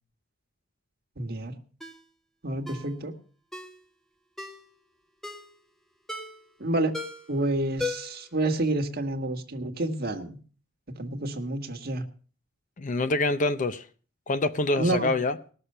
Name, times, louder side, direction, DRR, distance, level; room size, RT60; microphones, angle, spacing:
voice 1, 1.2-1.6 2.4-3.1 6.6-7.0 7.3-10.4 11.0-12.0 14.8-15.1, right 2 dB, 55° right, 1.6 m, -29 dB
Ringtone, 1.8-2.0 2.7-2.9 3.5-3.8 4.4-4.7 5.2-5.5 6.1-6.5 6.9-7.3 7.8-8.3 8.6-8.7, left 3 dB, ahead, 1.3 m, -36 dB
voice 2, 12.8-13.9 14.3-15.4, left 2 dB, 40° left, 0.6 m, -26 dB
19.0 x 6.7 x 5.5 m
head